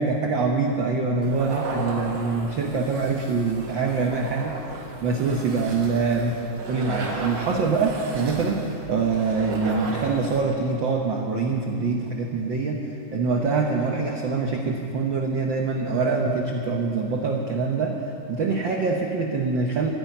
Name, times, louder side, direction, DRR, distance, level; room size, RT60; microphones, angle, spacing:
voice 1, 0.0-4.6 5.0-6.4 6.7-12.8 13.1-18.0 18.3-19.9, right 4 dB, 80° right, 1 dB, 1.0 m, -24 dB
sound 1, 1.2-10.5, right 3 dB, 65° right, 2.9 m, -36 dB
14.0 x 10.0 x 9.1 m, 2.7 s
omnidirectional pair, 3.5 m